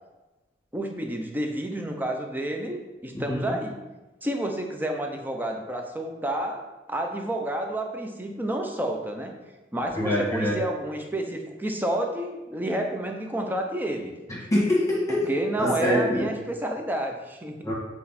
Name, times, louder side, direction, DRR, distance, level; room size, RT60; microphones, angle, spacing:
voice 1, 0.7-3.7 4.2-9.3 9.7-14.2 15.1-17.6, right 1 dB, 10° right, 3 dB, 0.7 m, -30 dB
voice 2, 3.1-3.6 10.0-10.6 14.3-16.3 17.6-17.7, left 1 dB, 15° left, -5 dB, 1.7 m, -25 dB
8.2 x 4.3 x 4.2 m, 1.1 s
head